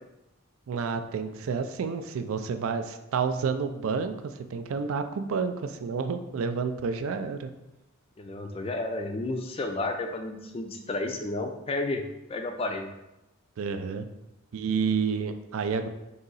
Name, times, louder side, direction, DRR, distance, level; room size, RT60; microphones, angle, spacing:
voice 1, 0.7-7.5 13.6-14.1 14.5-15.9, right 5 dB, 70° right, 9 dB, 0.3 m, -30 dB
voice 2, 8.2-12.0 12.3-12.9, left 2 dB, 25° left, 5 dB, 0.3 m, -31 dB
3.9 x 2.7 x 3.9 m, 0.93 s
head